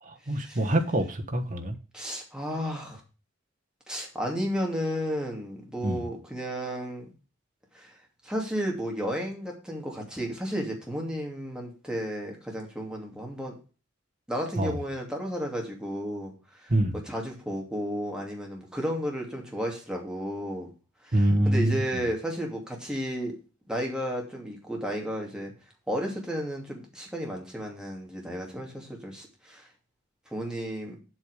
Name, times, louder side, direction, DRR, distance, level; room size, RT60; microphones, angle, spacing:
voice 1, 0.0-1.8 5.8-6.1 14.5-14.8 16.7-17.0 21.1-22.0, right 1 dB, 40° right, 1.3 m, -26 dB
voice 2, 1.9-3.0 3.9-7.1 7.7-7.9 8.2-13.5 14.3-16.3 16.6-16.7 17.1-20.7 21.0-21.1 21.4-23.3 23.7-25.5 25.9-29.7 30.3-31.0, equal, 5° right, 2.5 m, -33 dB
8.0 x 7.0 x 5.0 m
head